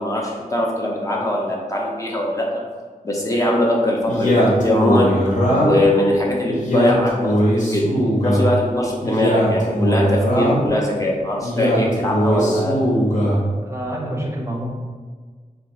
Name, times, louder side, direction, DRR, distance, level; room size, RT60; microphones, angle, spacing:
voice 1, 0.0-2.6 3.0-5.1 5.6-7.9 8.2-12.8, left 1 dB, 25° left, -3 dB, 0.5 m, -21 dB
Male speech man speaking, 4.1-5.9 6.5-8.5 9.0-10.7 11.4-13.4, equal, 60° left, 0.8 m, -19 dB
voice 2, 13.6-14.6, right 1 dB, 20° right, -2 dB, 0.6 m, -27 dB
2.5 x 2.3 x 4.0 m, 1.5 s
wide cardioid pair, 75°, 15 cm